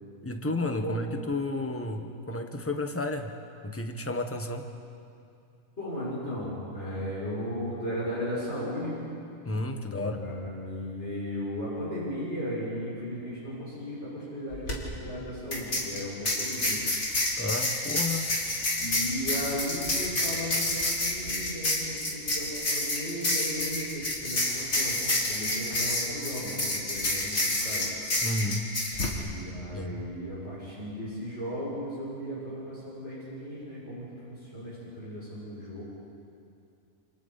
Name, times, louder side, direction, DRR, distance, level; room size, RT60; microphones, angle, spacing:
voice 1, 0.2-3.3 3.6-4.7 9.4-10.2 17.4-18.3 28.2-28.7 29.7-30.0, left 2 dB, 10° left, 5 dB, 1.2 m, -32 dB
voice 2, 5.8-9.0 9.8-16.8 18.8-25.0 25.3-27.9 29.3-35.8, equal, 50° left, -10 dB, 7.0 m, -36 dB
sound 1, 14.5-14.7 15.5-29.1, left 2 dB, 85° left, 3.5 m, -29 dB
28.5 x 28.0 x 4.2 m, 2.5 s
omnidirectional pair, 1.4 m